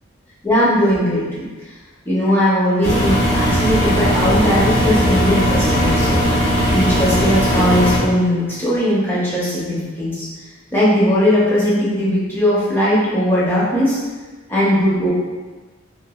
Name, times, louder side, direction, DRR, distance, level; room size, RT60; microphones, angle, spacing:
voice 1, 0.4-1.5 2.0-6.3 6.7-10.3 10.7-14.0 14.5-15.1, equal, 10° left, -8 dB, 0.6 m, -18 dB
Engine, 2.8-8.0, equal, 80° left, 1.5 m, -17 dB
2.9 x 2.3 x 2.3 m, 1.3 s
head